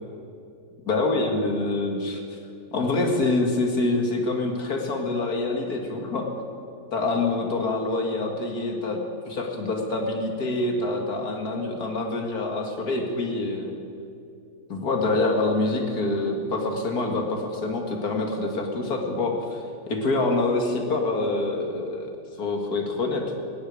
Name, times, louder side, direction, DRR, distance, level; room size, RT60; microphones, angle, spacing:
voice 1, 0.9-2.2 2.7-6.3 6.9-9.0 9.3-13.8 14.7-22.1 22.4-23.2, left 2 dB, 75° left, 2 dB, 2.4 m, -26 dB
17.0 x 8.4 x 9.5 m, 2.5 s
omnidirectional pair, 1.6 m